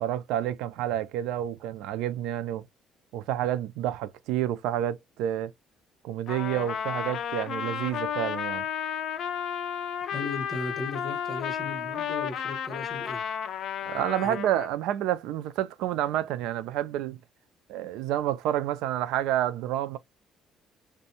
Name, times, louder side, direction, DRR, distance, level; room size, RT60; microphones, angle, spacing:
voice 1, 0.0-2.6 3.1-5.5 6.0-8.6 13.9-17.2 17.7-20.0, right 12 dB, 85° right, 0.3 m, -29 dB
Trumpet, 6.3-14.7, left 8 dB, 55° left, 0.4 m, -33 dB
voice 2, 10.0-13.2 14.2-14.4, left 2 dB, 20° left, 1.1 m, -36 dB
2.6 x 2.2 x 2.7 m
cardioid pair, 140°, 0 cm